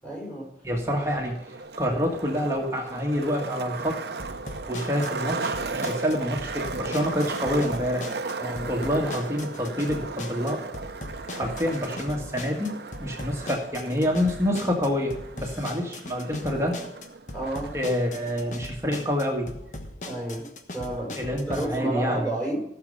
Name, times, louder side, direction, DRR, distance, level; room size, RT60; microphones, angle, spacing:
voice 1, 0.0-0.5 8.4-8.8 17.3-17.8 20.0-20.5 20.7-22.6, right 1 dB, 5° left, -3 dB, 5.3 m, -31 dB
voice 2, 0.6-4.0 4.7-8.1 8.7-10.6 11.3-16.8 17.7-19.5 21.1-22.3, equal, 15° right, 0 dB, 1.7 m, -27 dB
Skateboard, 0.9-17.9, right 4 dB, 70° right, 0.8 m, -36 dB
sound 1, 4.2-21.6, left 1 dB, 45° left, 1.2 m, -40 dB
16.0 x 6.9 x 5.4 m, 0.79 s
head